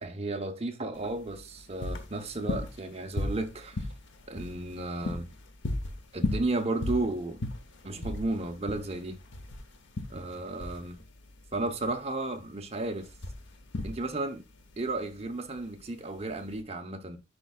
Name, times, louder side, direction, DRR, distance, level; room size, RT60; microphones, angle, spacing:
voice 1, 0.0-3.9 4.3-5.3 6.1-7.4 7.8-9.2 10.1-11.0 11.5-13.1 13.8-14.4 14.8-17.2, right 2 dB, 30° right, 0.8 m, -33 dB
sound 1, 0.9-16.6, left 2 dB, 60° left, 0.9 m, -37 dB
9.7 x 4.7 x 2.4 m
head